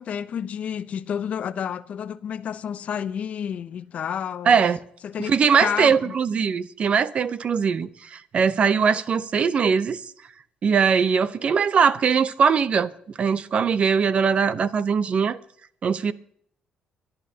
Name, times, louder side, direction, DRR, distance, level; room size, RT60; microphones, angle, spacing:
voice 1, 0.0-4.6 5.0-5.3 5.6-6.1, left 8 dB, 60° left, 0.7 m, -30 dB
voice 2, 4.5-4.8 5.3-10.0 10.6-12.9 13.2-15.4 15.8-16.1, right 6 dB, 50° right, 0.7 m, -21 dB
25.0 x 11.0 x 2.9 m
cardioid pair, 85°, 3 cm